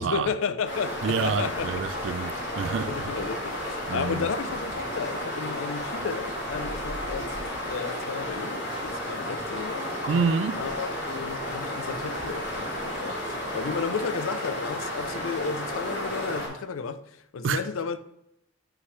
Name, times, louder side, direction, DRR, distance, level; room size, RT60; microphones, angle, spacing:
voice 1, 0.0-1.8 2.9-7.4 7.7-9.9 10.5-18.0, left 5 dB, 85° left, 0.4 m, -33 dB
sound 1, 0.6-16.5, left 1 dB, 65° left, 3.2 m, -32 dB
voice 2, 1.0-3.1 3.9-4.3 10.1-10.6 17.4-17.7, right 5 dB, 65° right, 0.4 m, -28 dB
9.5 x 5.6 x 3.2 m
head